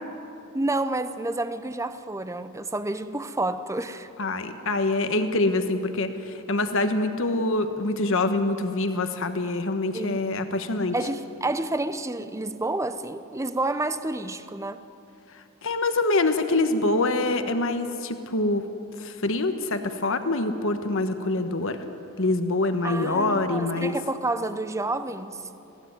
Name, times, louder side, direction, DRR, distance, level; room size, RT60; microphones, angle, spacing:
voice 1, 0.5-4.1 9.9-10.5 10.9-14.8 22.8-25.5, right 2 dB, 15° right, 12 dB, 0.7 m, -29 dB
voice 2, 4.2-10.9 15.3-18.7 19.0-21.8 22.2-24.0, left 2 dB, 65° left, 8 dB, 1.3 m, -25 dB
21.5 x 16.0 x 9.6 m, 2.9 s
head